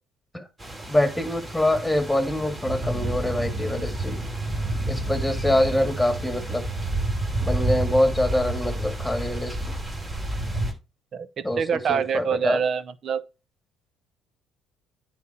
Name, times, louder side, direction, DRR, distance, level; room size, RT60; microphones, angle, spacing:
sound 1, 0.6-10.7, right 1 dB, 25° right, 2.6 m, -29 dB
voice 1, 0.9-4.2 4.9-6.7 7.4-9.7 11.4-12.6, left 1 dB, 5° left, 2.1 m, -25 dB
voice 2, 11.1-13.2, right 7 dB, 50° right, 0.8 m, -25 dB
9.4 x 4.5 x 4.4 m
supercardioid pair, 80°, 0 cm